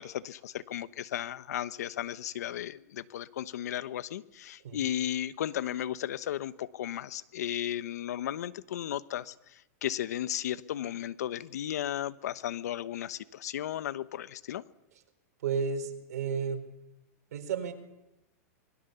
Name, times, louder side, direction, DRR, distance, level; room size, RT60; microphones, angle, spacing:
voice 1, 0.0-14.6, left 11 dB, 75° left, 15 dB, 1.0 m, -35 dB
voice 2, 15.4-16.6 17.3-17.7, right 6 dB, 75° right, 5 dB, 4.7 m, -32 dB
25.5 x 21.5 x 7.0 m, 0.92 s
hypercardioid pair, 130°, 9 cm